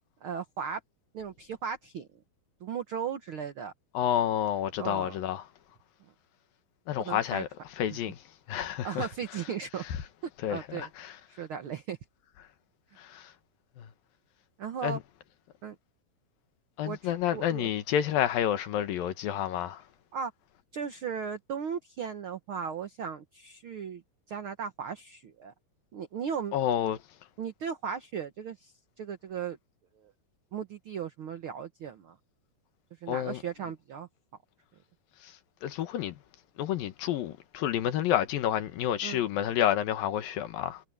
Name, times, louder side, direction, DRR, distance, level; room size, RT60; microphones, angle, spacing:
voice 1, 0.2-0.8 1.1-2.1 2.6-3.7 4.8-5.2 7.0-7.4 7.9-8.0 8.8-9.8 10.2-10.9 11.4-12.0 14.6-15.0 15.6-15.8 16.8-17.7 20.1-20.3 20.7-24.0 24.3-25.5 25.9-26.6 27.4-28.7 29.0-29.6 30.0-30.1 30.5-32.1 33.0-34.1 39.0-39.2, right 7 dB, 85° right, 1.1 m, -36 dB
voice 2, 3.9-5.5 6.9-7.5 7.8-8.2 8.5-9.1 10.4-11.1 13.0-13.3 13.8-13.9 14.8-15.0 16.8-19.8 26.5-27.0 33.1-33.4 35.2-35.3 35.6-36.2 36.6-40.8, left 10 dB, 80° left, 3.1 m, -29 dB
omnidirectional pair, 4.1 m